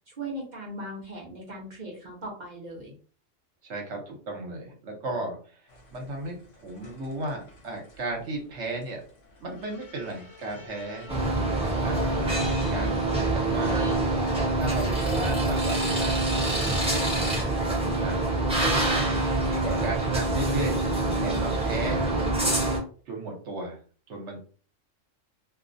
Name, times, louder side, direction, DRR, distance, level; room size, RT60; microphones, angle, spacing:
voice 1, 0.1-2.9, right 1 dB, 45° right, -3 dB, 0.7 m, -39 dB
voice 2, 3.6-9.0 9.4-11.1 11.8-13.9 14.5-17.4 18.0-18.3 19.1-20.8 21.2-22.5 23.1-23.8 24.1-24.4, right 2 dB, 65° right, 1 dB, 1.0 m, -35 dB
sound 1, 6.8-7.6 9.6-14.0, right 5 dB, 75° left, 1.0 m, -37 dB
sound 2, 11.1-22.8, right 2 dB, 5° right, 0.6 m, -25 dB
2.4 x 2.0 x 2.5 m, 0.41 s
omnidirectional pair, 1.3 m